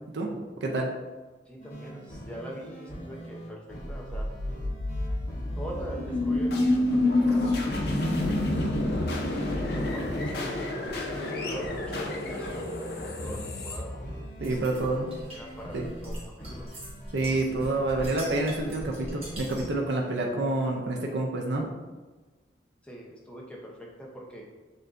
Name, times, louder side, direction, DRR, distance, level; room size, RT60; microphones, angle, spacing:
voice 1, 0.1-0.9 14.4-15.1 15.7-15.8 17.1-21.7, right 2 dB, 70° right, 0 dB, 0.5 m, -28 dB
voice 2, 1.5-3.6 3.9-4.3 5.5-8.0 8.4-9.1 9.7-12.7 13.0-13.9 14.4-14.9 15.3-16.2 16.5-16.7 22.8-24.4, equal, 5° left, -3 dB, 0.6 m, -43 dB
sound 1, 1.6-20.3, right 1 dB, 40° left, 1.2 m, -43 dB
sound 2, 3.8-14.8, left 2 dB, 60° left, 0.6 m, -29 dB
sound 3, 14.4-19.8, equal, 30° right, 1.0 m, -42 dB
6.3 x 2.6 x 2.5 m, 1.2 s
head